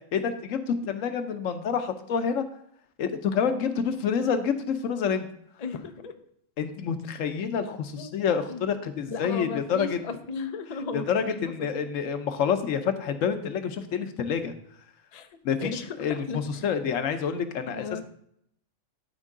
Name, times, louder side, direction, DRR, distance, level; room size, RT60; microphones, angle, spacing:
voice 1, 0.1-2.4 3.0-5.3 6.6-10.0 10.9-14.5 15.4-17.8, left 7 dB, 90° left, 9 dB, 1.1 m, -28 dB
voice 2, 5.6-6.2 8.0-8.1 8.5-8.7 9.1-11.3 11.6-11.8 15.1-15.3 15.6-16.7 17.7-18.0, left 4 dB, 40° left, 7 dB, 0.6 m, -36 dB
13.0 x 4.5 x 3.7 m, 0.69 s
omnidirectional pair, 1.3 m